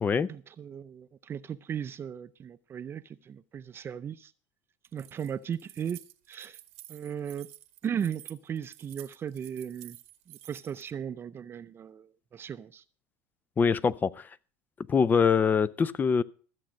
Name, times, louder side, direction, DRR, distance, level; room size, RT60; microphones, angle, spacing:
voice 1, 0.3-4.3 4.9-6.0 6.3-6.6 6.9-7.5 7.8-10.0 10.3-12.8, right 8 dB, 30° right, 0.6 m, -37 dB
Keys jangling, 4.8-10.9, right 16 dB, 80° right, 1.1 m, -51 dB
voice 2, 13.6-14.3 14.9-16.2, left 6 dB, 25° left, 0.6 m, -24 dB
14.0 x 7.6 x 6.3 m
supercardioid pair, 105°, 8 cm